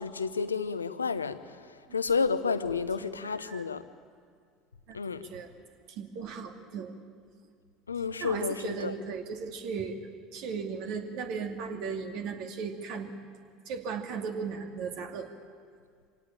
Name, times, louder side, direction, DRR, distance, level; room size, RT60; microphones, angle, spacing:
voice 1, 0.0-3.8 4.9-5.2 7.9-9.0, left 5 dB, 85° left, 12 dB, 0.9 m, -31 dB
voice 2, 5.9-7.0 8.2-10.0 10.3-13.1 13.7-15.3, right 5 dB, 60° right, 4 dB, 2.5 m, -36 dB
25.5 x 18.0 x 8.9 m, 2.1 s
figure-of-eight pair, 70°, 0 cm